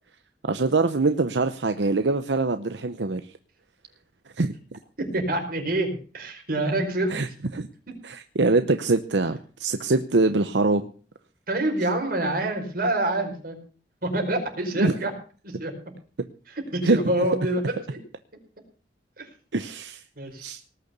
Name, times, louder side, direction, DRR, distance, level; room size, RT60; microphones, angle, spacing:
voice 1, 0.4-3.2 4.4-4.8 7.1-7.3 7.5-7.7 8.0-10.9 14.8-14.9 16.8-17.0 19.5-20.0 20.4-20.6, right 3 dB, 85° right, 9 dB, 0.9 m, -23 dB
voice 2, 5.0-7.2 11.5-13.6 14.0-15.1 15.4-15.7 16.5-18.0 19.2-19.3 20.2-20.5, right 1 dB, 55° right, 2 dB, 4.9 m, -27 dB
19.0 x 6.8 x 8.1 m, 0.40 s
head